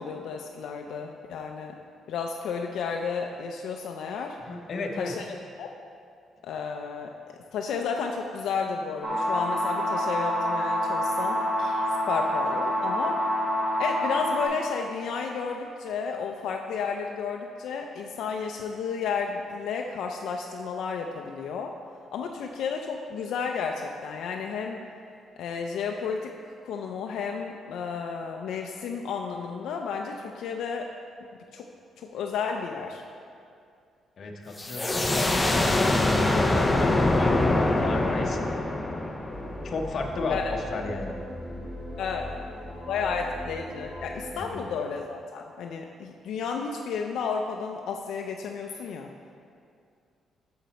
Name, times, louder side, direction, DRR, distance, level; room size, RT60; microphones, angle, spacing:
voice 1, 0.0-1.7 2.1-4.4 5.0-5.7 6.4-7.1 7.5-13.2 13.8-21.7 22.1-24.8 25.4-26.3 26.6-30.9 31.5-31.7 32.0-33.0 40.3-40.5 42.0-42.3 42.9-49.1, left 5 dB, 75° left, 2 dB, 0.4 m, -32 dB
voice 2, 4.4-5.1 34.2-38.4 39.6-41.2 44.3-44.6, left 3 dB, 45° left, 2 dB, 0.8 m, -34 dB
sound 1, 9.0-14.5, equal, 20° right, 1.3 m, -27 dB
sound 2, 34.6-40.1, left 2 dB, 15° left, 0.5 m, -24 dB
sound 3, 39.3-44.5, left 1 dB, 5° right, 1.6 m, -39 dB
8.3 x 6.6 x 4.1 m, 2.4 s
cardioid pair, 145°, 0 cm